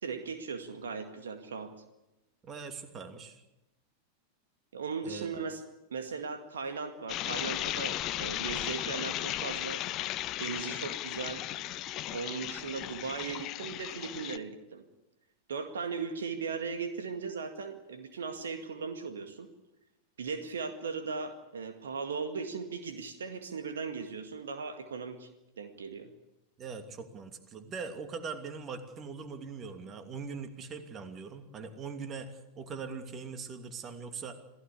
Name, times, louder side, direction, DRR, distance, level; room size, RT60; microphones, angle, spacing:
voice 1, 0.0-1.7 4.7-5.6 5.9-9.8 10.4-11.4 12.1-14.8 15.5-19.5 20.2-25.3 25.6-26.1, right 5 dB, 65° right, 7 dB, 2.0 m, -38 dB
voice 2, 2.4-3.4 5.0-5.4 26.6-34.3, right 5 dB, 25° right, 7 dB, 2.8 m, -41 dB
sound 1, 7.1-14.4, left 14 dB, 35° left, 0.9 m, -36 dB
27.5 x 16.0 x 8.4 m, 0.93 s
figure-of-eight pair, 90°, 0 cm